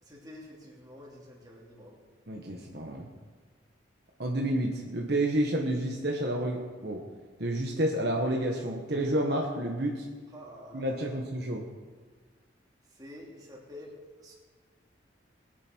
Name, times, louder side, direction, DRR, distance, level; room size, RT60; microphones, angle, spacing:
voice 1, 0.0-2.0 10.3-11.3 12.9-13.9 14.2-14.3, equal, 20° right, -3 dB, 2.8 m, -48 dB
voice 2, 2.3-3.1 4.2-7.0 7.4-10.1 10.7-11.6, right 1 dB, 55° right, 0 dB, 1.3 m, -30 dB
21.5 x 9.9 x 4.6 m, 1.5 s
head